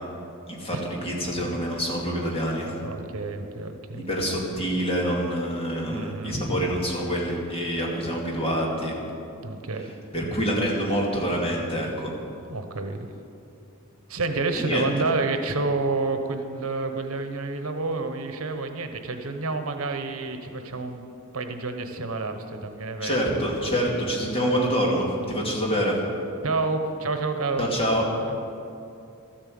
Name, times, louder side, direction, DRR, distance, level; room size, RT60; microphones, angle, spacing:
voice 1, 0.5-2.7 4.1-8.9 10.1-12.1 14.6-14.8 23.0-26.0 27.6-28.0, equal, 25° left, -2 dB, 2.5 m, -26 dB
voice 2, 2.8-4.1 5.9-6.6 9.4-9.9 12.5-13.1 14.1-21.1 21.3-23.2 24.4-24.7 26.4-27.7 28.3-28.4, right 3 dB, 75° right, 6 dB, 1.0 m, -29 dB
13.0 x 8.9 x 7.7 m, 2.7 s
head